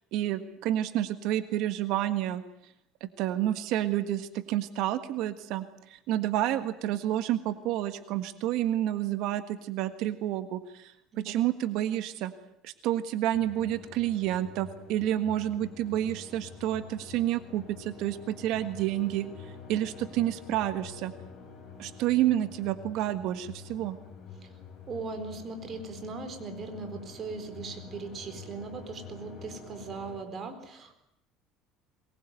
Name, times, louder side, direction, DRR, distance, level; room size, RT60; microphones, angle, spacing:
voice 1, 0.1-2.4 3.0-10.9 11.2-12.3 12.6-19.3 19.7-21.1 21.8-24.0, right 13 dB, 65° right, 10 dB, 1.5 m, -29 dB
sound 1, 13.3-30.2, left 6 dB, 35° left, 7.3 m, -47 dB
voice 2, 24.9-31.0, right 4 dB, 30° right, 7 dB, 4.2 m, -39 dB
23.0 x 21.0 x 9.2 m, 0.76 s
cardioid pair, 150°, 0 cm